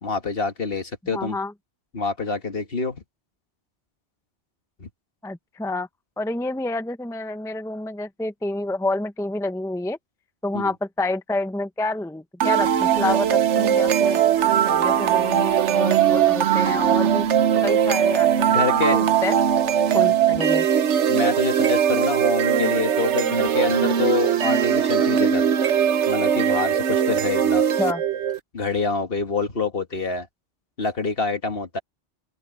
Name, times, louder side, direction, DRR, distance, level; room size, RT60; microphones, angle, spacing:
voice 1, 0.0-1.4 1.9-3.0 4.8-4.9 10.5-10.7 18.5-19.0 20.0-20.1 21.1-25.5 26.1-27.6 28.5-30.3 30.8-31.8, left 4 dB, 55° left, 1.9 m, -26 dB
voice 2, 1.1-1.5 5.2-5.9 6.2-10.0 10.4-14.2 14.7-17.3 17.6-19.4 19.9-20.7 27.8-28.0, left 2 dB, 5° left, 0.7 m, -28 dB
sound 1, 12.4-28.4, right 9 dB, 75° right, 1.1 m, -20 dB
open air
omnidirectional pair, 1.2 m